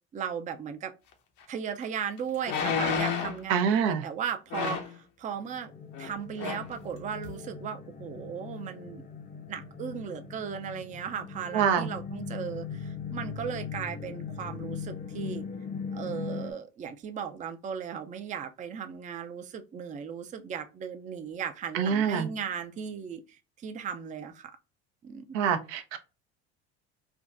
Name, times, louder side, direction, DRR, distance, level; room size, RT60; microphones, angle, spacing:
voice 1, 0.1-0.9 1.5-5.7 6.0-9.0 9.5-15.5 15.9-24.5 25.0-25.4, right 7 dB, 25° right, 0.4 m, -37 dB
sound 1, 1.4-1.5 2.4-3.4 4.5-5.0 5.9-6.1 6.4-6.7 7.2-7.3, left 6 dB, 65° left, 0.8 m, -30 dB
voice 2, 3.5-4.0 11.5-11.9 21.7-22.3 25.3-26.0, right 7 dB, 75° right, 0.6 m, -25 dB
sound 2, 5.3-16.5, left 6 dB, 25° left, 0.6 m, -40 dB
3.5 x 2.2 x 2.4 m
supercardioid pair, 85°, 31 cm